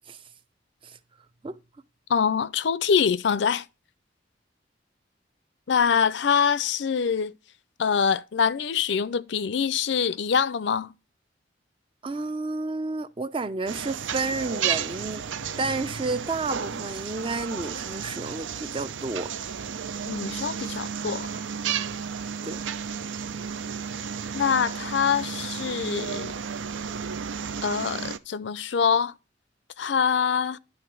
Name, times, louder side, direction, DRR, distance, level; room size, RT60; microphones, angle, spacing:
voice 1, 2.1-3.6 5.7-7.3 7.8-10.9 20.0-21.4 24.3-26.3 27.6-29.1 29.8-30.6, left 6 dB, 70° left, 0.4 m, -24 dB
voice 2, 12.0-15.2 15.6-19.3 22.4-22.6, right 3 dB, 30° right, 0.5 m, -31 dB
sound 1, 13.7-28.2, right 7 dB, 90° right, 0.6 m, -33 dB
11.0 x 3.8 x 6.1 m
head